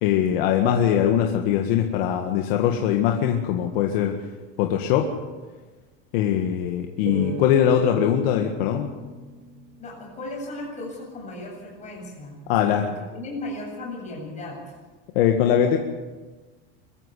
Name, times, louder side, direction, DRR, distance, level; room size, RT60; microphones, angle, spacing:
voice 1, 0.0-4.2 4.6-5.1 6.1-8.9 12.5-12.9 15.2-15.8, left 9 dB, 80° left, 3 dB, 1.9 m, -21 dB
sound 1, 7.1-10.4, right 2 dB, 55° right, 2.3 m, -37 dB
voice 2, 9.8-14.8, left 2 dB, 25° left, -1 dB, 7.7 m, -36 dB
23.5 x 14.0 x 8.4 m, 1.3 s
cardioid pair, 165°, 30 cm